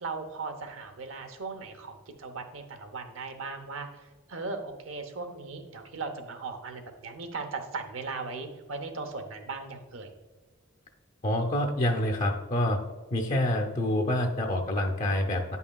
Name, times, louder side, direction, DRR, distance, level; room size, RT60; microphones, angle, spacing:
voice 1, 0.0-10.1, right 4 dB, 75° right, 7 dB, 0.8 m, -38 dB
voice 2, 11.2-12.8 13.1-15.6, left 1 dB, 40° left, 2 dB, 0.6 m, -27 dB
9.5 x 5.5 x 2.3 m, 1.3 s
head